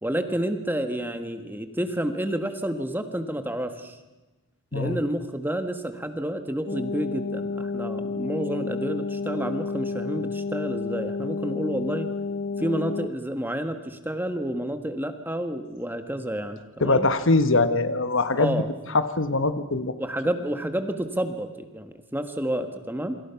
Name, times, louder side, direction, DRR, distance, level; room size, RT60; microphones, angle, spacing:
voice 1, 0.0-4.0 4.7-12.1 12.6-17.1 18.4-18.7 20.0-23.2, right 1 dB, 10° right, 8 dB, 1.4 m, -30 dB
sound 1, 6.7-13.1, left 4 dB, 40° left, 0.9 m, -30 dB
voice 2, 16.8-18.6 18.9-19.9, left 3 dB, 60° left, 11 dB, 1.3 m, -22 dB
27.5 x 25.0 x 5.9 m, 1.1 s
head